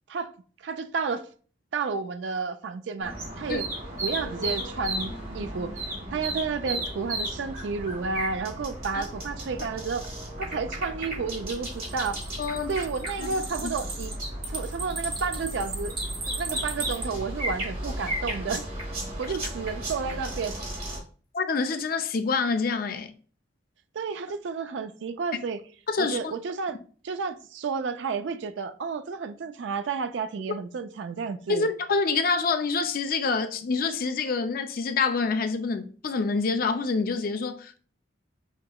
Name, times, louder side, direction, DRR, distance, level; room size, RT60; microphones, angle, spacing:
voice 1, 0.6-1.3 1.7-3.7 4.0-10.1 10.4-12.2 12.7-14.1 14.5-15.9 16.3-18.6 19.2-20.6 23.9-25.6 26.0-26.8 27.0-31.7, right 5 dB, 70° right, 0.4 m, -31 dB
sound 1, 3.0-21.0, right 1 dB, 50° right, 1.5 m, -34 dB
sound 2, 11.5-17.1, right 3 dB, 25° right, 0.8 m, -37 dB
voice 2, 12.4-12.7 13.2-13.3 21.3-23.1 25.9-26.3 31.5-37.8, left 4 dB, 50° left, 0.4 m, -26 dB
5.8 x 2.8 x 2.3 m
head